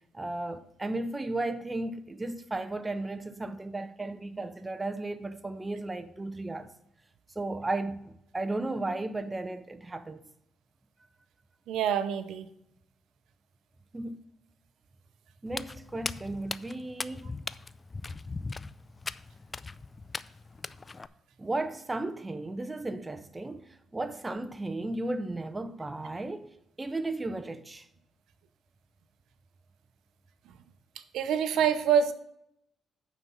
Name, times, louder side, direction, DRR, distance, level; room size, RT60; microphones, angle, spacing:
voice 1, 0.1-6.7 7.4-10.2 13.9-14.2 15.4-17.4 21.4-26.5 26.8-27.9, right 2 dB, 20° right, 0.6 m, -35 dB
voice 2, 11.7-12.5 31.1-32.1, right 8 dB, 80° right, 0.6 m, -26 dB
Walk footsteps, 15.5-21.1, left 3 dB, 25° left, 0.3 m, -39 dB
9.2 x 4.1 x 5.9 m
cardioid pair, 90°, 0 cm